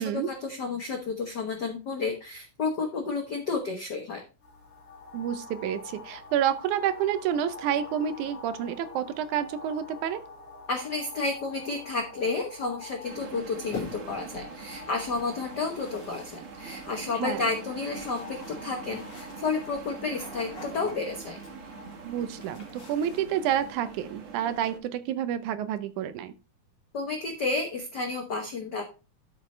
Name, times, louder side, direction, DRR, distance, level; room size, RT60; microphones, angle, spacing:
voice 1, 0.0-4.2 10.7-21.4 26.9-28.8, left 4 dB, 75° left, 3 dB, 0.9 m, -31 dB
sound 1, 4.4-23.7, left 3 dB, 30° left, 2.6 m, -47 dB
voice 2, 5.1-10.2 17.1-17.4 22.0-26.3, right 10 dB, 80° right, 12 dB, 2.1 m, -29 dB
sound 2, 13.0-24.8, right 6 dB, 60° right, 2.4 m, -44 dB
sound 3, 13.7-14.3 15.1-23.7, left 3 dB, 50° left, 3.1 m, -46 dB
12.5 x 6.0 x 3.2 m, 0.32 s
omnidirectional pair, 3.6 m